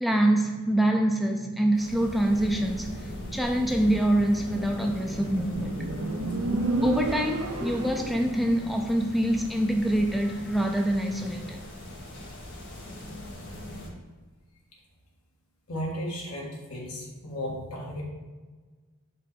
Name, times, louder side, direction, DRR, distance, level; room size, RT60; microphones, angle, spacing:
voice 1, 0.0-2.9 3.3-5.8 6.8-11.6, right 1 dB, ahead, 2 dB, 0.4 m, -25 dB
sound 1, 1.7-13.9, left 1 dB, 50° left, 2.0 m, -39 dB
Motorcycle, 4.8-8.3, right 2 dB, 80° right, 0.9 m, -30 dB
voice 2, 15.7-18.0, equal, 80° left, -3 dB, 1.8 m, -34 dB
5.2 x 3.9 x 5.8 m, 1.4 s
head